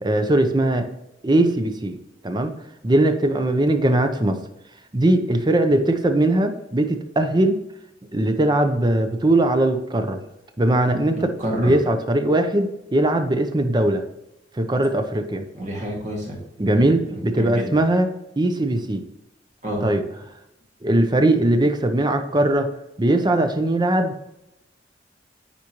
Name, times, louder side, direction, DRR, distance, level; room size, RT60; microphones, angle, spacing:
voice 1, 0.0-0.9 1.2-2.0 2.2-2.5 2.8-4.4 4.9-7.6 8.1-10.2 10.6-14.0 14.6-15.4 16.6-18.1 18.4-19.0 19.8-20.0 20.8-22.7 23.0-24.1, right 1 dB, 25° right, 7 dB, 0.6 m, -20 dB
voice 2, 11.4-11.7 15.6-16.8 17.1-17.7 19.6-19.8, right 1 dB, 40° right, -2 dB, 2.1 m, -29 dB
9.5 x 4.1 x 3.0 m, 0.89 s
head